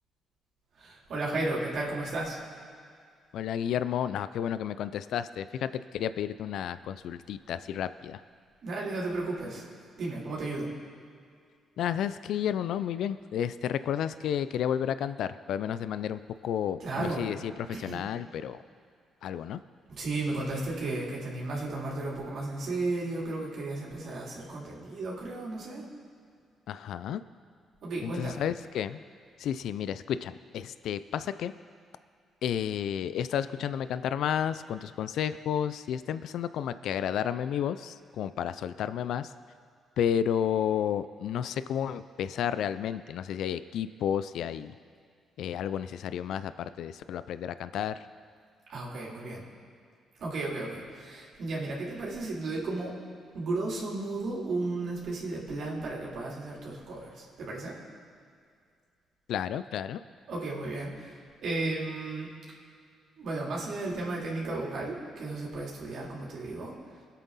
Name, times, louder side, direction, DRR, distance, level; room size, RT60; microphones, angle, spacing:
voice 1, 0.8-2.4 8.6-9.7 10.0-10.7 16.8-17.3 17.7-18.0 19.9-25.8 27.8-28.4 48.7-49.4 50.2-52.9 53.3-57.8 60.3-62.3 63.2-66.7, right 2 dB, 65° right, -4 dB, 3.4 m, -34 dB
voice 2, 3.3-8.2 11.8-18.6 19.2-19.6 26.7-27.2 28.0-29.0 29.4-31.5 32.4-39.3 40.0-44.7 45.4-48.1 59.3-60.0, left 9 dB, 75° left, 13 dB, 0.4 m, -31 dB
23.5 x 8.3 x 4.1 m, 2.2 s
cardioid pair, 90°, 0 cm